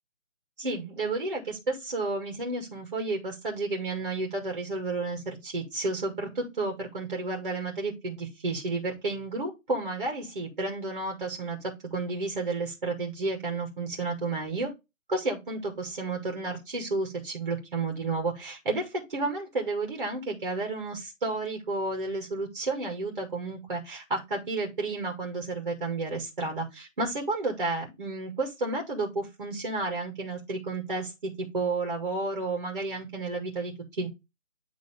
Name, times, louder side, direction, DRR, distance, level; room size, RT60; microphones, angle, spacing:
voice 1, 0.6-14.7 15.1-34.1, right 3 dB, 35° right, 1 dB, 2.0 m, -31 dB
9.3 x 3.6 x 3.5 m, 0.22 s
figure-of-eight pair, 170°, 40 cm